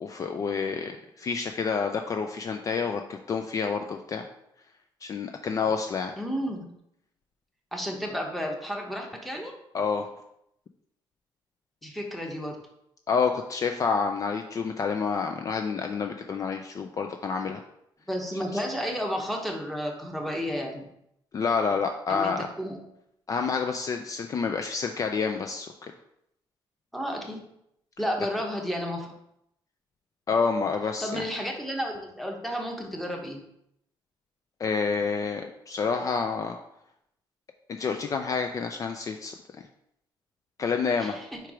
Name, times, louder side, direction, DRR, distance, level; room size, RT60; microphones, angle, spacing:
voice 1, 0.0-4.3 5.0-6.1 9.7-10.1 13.1-17.6 21.3-22.5 23.3-25.7 30.3-31.2 34.6-36.6 37.7-39.3 40.6-41.2, left 5 dB, 40° left, 5 dB, 0.4 m, -28 dB
voice 2, 6.2-6.7 7.7-9.5 11.8-12.6 18.1-20.9 22.1-22.8 26.9-27.4 28.0-29.1 31.0-33.4 41.0-41.4, equal, ahead, 1 dB, 1.1 m, -32 dB
4.6 x 4.6 x 4.9 m, 0.76 s
cardioid pair, 130°, 9 cm